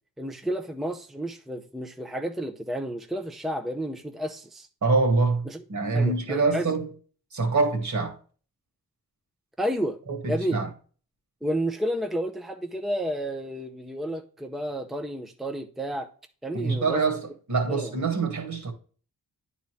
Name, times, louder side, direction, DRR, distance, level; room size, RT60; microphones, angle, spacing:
voice 1, 0.2-4.7 5.5-5.6 5.9-6.7 9.6-10.0 10.3-10.6 11.4-16.1 16.4-17.0 17.7-17.9, equal, ahead, 0.7 m, -31 dB
voice 2, 4.8-6.9 7.3-8.2 10.1-10.7 16.5-18.7, right 3 dB, 50° right, 2.1 m, -25 dB
9.9 x 4.1 x 3.2 m
cardioid pair, 85°, 36 cm